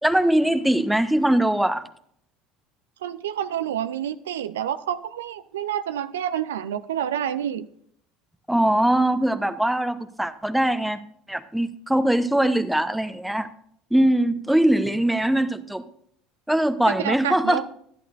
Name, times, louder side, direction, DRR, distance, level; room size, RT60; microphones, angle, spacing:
voice 1, 0.0-1.8 8.5-11.0 11.3-13.5 13.9-15.8 16.5-17.6, right 1 dB, 5° right, 10 dB, 0.8 m, -21 dB
voice 2, 3.0-7.7 16.9-17.6, right 10 dB, 80° right, 13 dB, 0.4 m, -28 dB
12.5 x 11.0 x 2.5 m, 0.66 s
hypercardioid pair, 70°, 0 cm